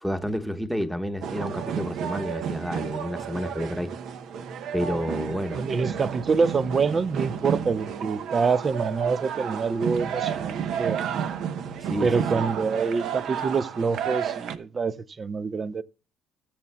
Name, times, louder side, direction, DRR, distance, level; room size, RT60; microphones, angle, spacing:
voice 1, 0.0-3.9 4.7-5.6 11.8-12.1 12.3-12.4, equal, ahead, 1.1 m, -30 dB
sound 1, 1.2-14.6, right 8 dB, 65° right, 0.9 m, -31 dB
voice 2, 5.6-11.0 12.0-15.8, right 5 dB, 30° right, 0.5 m, -26 dB
18.0 x 7.2 x 2.2 m
cardioid pair, 115°, 0 cm